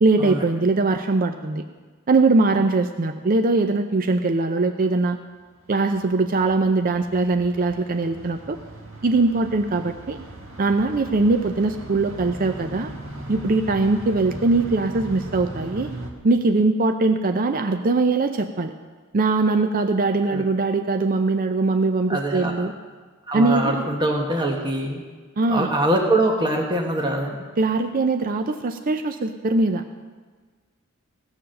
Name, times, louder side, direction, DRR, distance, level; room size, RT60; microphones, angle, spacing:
voice 1, 0.0-1.6 2.1-5.2 5.7-8.6 9.0-10.2 10.6-12.9 13.3-15.9 16.2-18.7 19.1-22.7 23.3-23.8 25.4-25.7 27.6-29.8, right 3 dB, 40° right, 7 dB, 0.5 m, -21 dB
sound 1, 5.7-16.1, right 1 dB, 65° right, 1.5 m, -38 dB
voice 2, 22.1-22.5 23.3-25.0 25.5-27.4, right 1 dB, 20° right, 0 dB, 1.2 m, -23 dB
17.0 x 6.9 x 6.4 m, 1.4 s
head